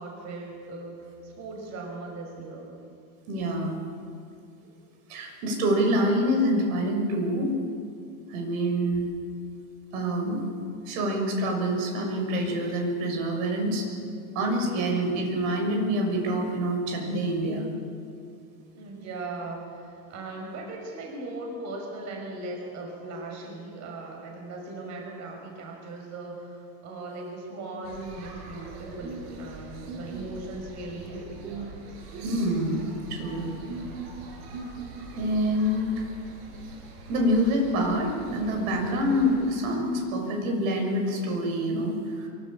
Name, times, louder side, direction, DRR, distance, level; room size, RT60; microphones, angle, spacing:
voice 1, 0.0-2.7 18.7-31.6, right 2 dB, 35° right, 1 dB, 5.9 m, -38 dB
voice 2, 3.3-3.8 5.1-7.5 8.3-9.1 9.9-10.5 10.9-13.9 14.3-17.7 32.2-32.8 33.1-33.4 35.1-36.0 37.1-42.3, equal, 60° right, 2 dB, 6.5 m, -26 dB
sound 1, 27.8-39.5, right 3 dB, 85° right, 6.8 m, -40 dB
25.5 x 23.0 x 8.7 m, 2.4 s
supercardioid pair, 155°, 47 cm